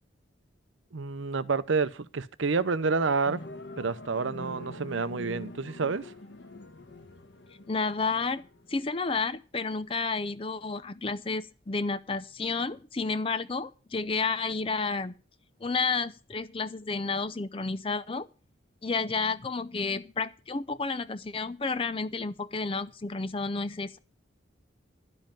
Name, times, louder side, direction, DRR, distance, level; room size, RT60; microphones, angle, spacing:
voice 1, 0.9-3.4 3.8-6.1, right 4 dB, 75° right, 0.7 m, -29 dB
sound 1, 3.3-8.9, left 1 dB, 65° left, 1.3 m, -45 dB
voice 2, 7.7-8.4 8.7-15.1 15.6-18.3 18.8-24.0, left 4 dB, 30° left, 0.5 m, -31 dB
12.0 x 5.5 x 8.8 m
head